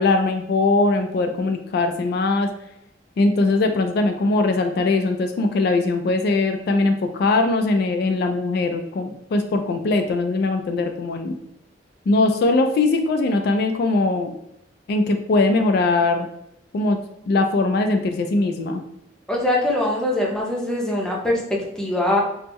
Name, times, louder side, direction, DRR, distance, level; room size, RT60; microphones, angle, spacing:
voice 1, 0.0-2.5 3.2-11.4 12.1-14.3 14.9-16.3 16.7-17.0 17.3-18.8, left 3 dB, 60° left, 6 dB, 0.3 m, -21 dB
voice 2, 19.3-22.2, left 1 dB, 5° left, -3 dB, 0.6 m, -22 dB
3.5 x 2.0 x 2.9 m, 0.79 s
head